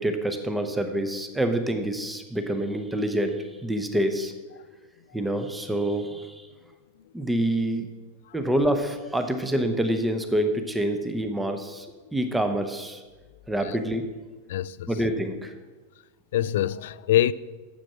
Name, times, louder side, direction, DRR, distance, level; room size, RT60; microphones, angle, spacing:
voice 1, 0.0-4.3 5.1-6.5 7.1-7.9 8.3-11.9 12.1-13.0 13.5-14.0 14.9-15.5, right 1 dB, 5° right, 0.9 m, -26 dB
voice 2, 14.5-14.9 16.3-17.3, left 12 dB, 55° left, 0.3 m, -24 dB
8.9 x 7.2 x 5.8 m
figure-of-eight pair, 90°, 0 cm